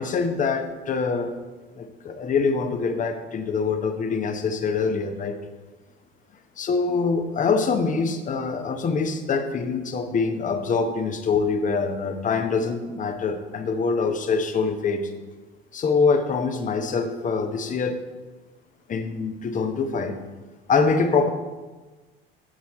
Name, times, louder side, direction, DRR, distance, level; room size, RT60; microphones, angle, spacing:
voice 1, 0.0-1.3 1.8-5.4 6.6-15.1 15.7-18.0 18.9-20.2 20.7-21.3, left 4 dB, 25° left, 8 dB, 0.9 m, -24 dB
7.6 x 7.1 x 4.2 m, 1.3 s
figure-of-eight pair, 65°, 30 cm